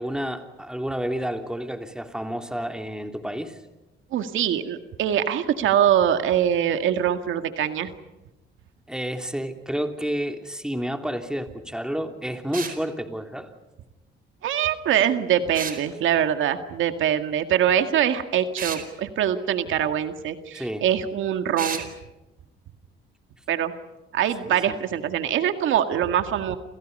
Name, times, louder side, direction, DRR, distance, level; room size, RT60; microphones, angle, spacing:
voice 1, 0.0-3.6 8.9-13.5 20.5-20.9 24.7-24.8, equal, 5° right, 5 dB, 3.3 m, -30 dB
voice 2, 4.1-7.9 14.4-21.8 23.5-23.7 24.1-26.6, right 10 dB, 80° right, 8 dB, 2.0 m, -23 dB
sound 1, 12.5-12.8 15.5-15.8 18.6-18.9 21.6-21.9, right 6 dB, 45° right, 4.6 m, -31 dB
29.0 x 28.5 x 5.5 m, 1.0 s
cardioid pair, 90°, 20 cm